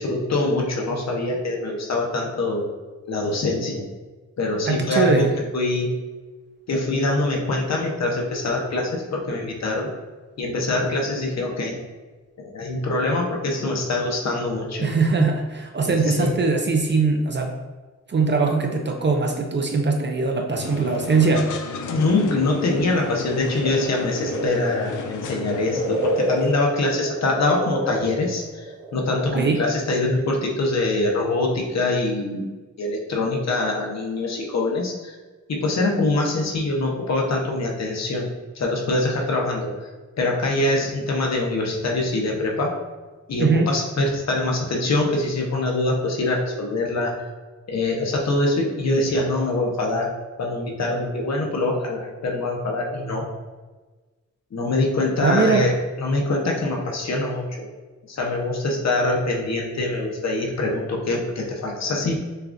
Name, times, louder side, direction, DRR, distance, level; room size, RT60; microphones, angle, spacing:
voice 1, 0.0-2.7 3.1-3.8 4.4-5.3 5.5-5.9 6.7-9.9 10.4-11.8 12.4-14.9 15.9-16.3 21.9-28.6 28.9-32.5 32.8-35.2 35.5-39.7 40.2-42.7 43.3-47.1 47.7-50.1 50.4-53.2 54.5-57.7 58.1-62.1, left 2 dB, 60° left, 0 dB, 0.8 m, -24 dB
voice 2, 4.7-5.3 14.8-17.6 18.1-21.5 29.3-29.6 43.4-43.7 55.2-55.7, right 4 dB, 40° right, 3 dB, 0.4 m, -21 dB
sound 1, 20.6-26.5, left 4 dB, 85° left, 0.5 m, -33 dB
sound 2, 23.6-29.4 29.6-29.7, right 2 dB, 85° right, 1.5 m, -29 dB
6.6 x 2.4 x 2.5 m, 1.3 s
wide cardioid pair, 120°, 30 cm